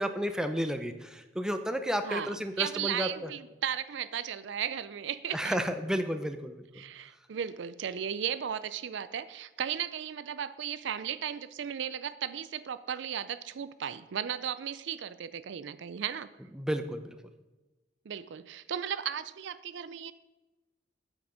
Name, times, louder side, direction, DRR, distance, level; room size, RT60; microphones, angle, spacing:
voice 1, 0.0-3.3 5.3-6.8 16.6-17.2, equal, 5° right, 7 dB, 0.6 m, -32 dB
voice 2, 2.0-5.6 6.8-16.3 18.1-20.1, right 9 dB, 65° right, 14 dB, 0.4 m, -35 dB
8.5 x 8.4 x 5.0 m, 1.1 s
head